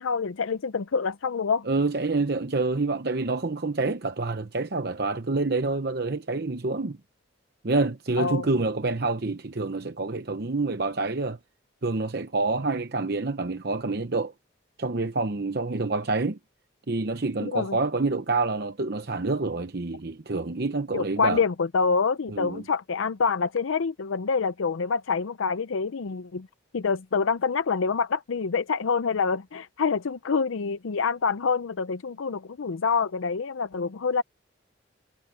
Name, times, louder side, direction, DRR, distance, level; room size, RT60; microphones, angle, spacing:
voice 1, 0.0-1.7 8.2-8.5 17.4-17.8 20.9-26.5 26.7-34.2, left 5 dB, 85° left, 0.6 m, -26 dB
voice 2, 1.7-7.0 7.6-11.4 11.8-14.3 14.8-16.4 16.9-21.4 22.3-22.6, right 3 dB, 50° right, 0.9 m, -27 dB
head